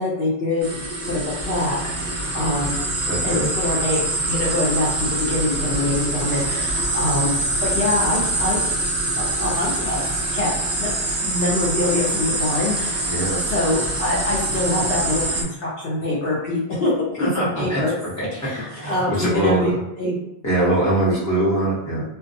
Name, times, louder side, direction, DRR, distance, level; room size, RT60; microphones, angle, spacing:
voice 1, 0.0-2.8 3.2-7.4 7.6-8.7 9.2-10.5 10.8-10.9 11.2-13.1 13.5-17.9 18.3-20.2, left 2 dB, 65° left, -5 dB, 0.8 m, -24 dB
sound 1, 0.6-15.4, right 2 dB, 50° right, 0.7 m, -24 dB
voice 2, 3.1-3.5 13.1-13.4 17.2-17.8 18.2-18.3 18.7-19.7 20.4-22.0, right 1 dB, 15° left, -8 dB, 0.8 m, -22 dB
2.2 x 2.2 x 2.6 m, 0.90 s
omnidirectional pair, 1.0 m